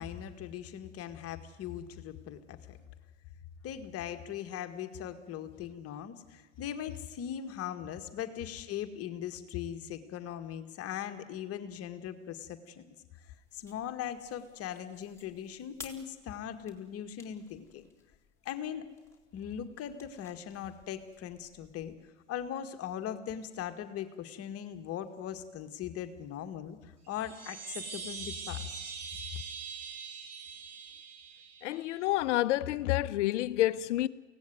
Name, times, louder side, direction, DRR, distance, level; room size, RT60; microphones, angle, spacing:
voice 1, 0.0-2.8 3.6-12.9 13.3-17.9 18.5-18.9 19.3-21.9 22.3-28.7, left 10 dB, 40° left, 1.9 m, -40 dB
sound 1, 13.1-22.0, left 4 dB, 5° left, 3.6 m, -56 dB
sound 2, 27.1-32.1, right 6 dB, 40° right, 4.8 m, -43 dB
voice 2, 31.6-34.1, left 15 dB, 65° left, 0.9 m, -29 dB
23.5 x 17.5 x 9.4 m
hypercardioid pair, 105°, 38 cm